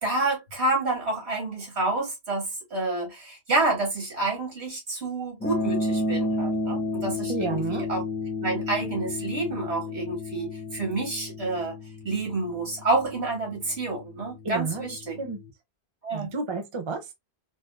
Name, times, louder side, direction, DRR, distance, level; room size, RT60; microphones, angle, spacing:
voice 1, 0.0-8.0 8.4-11.7 12.0-15.2 16.0-16.3, right 2 dB, 70° right, 2.3 m, -28 dB
sound 1, 5.4-15.5, left 2 dB, 15° left, 0.6 m, -32 dB
voice 2, 7.3-7.8 14.4-14.8 15.2-15.4 16.1-17.1, right 4 dB, 35° right, 0.6 m, -30 dB
4.0 x 2.6 x 2.4 m
omnidirectional pair, 1.1 m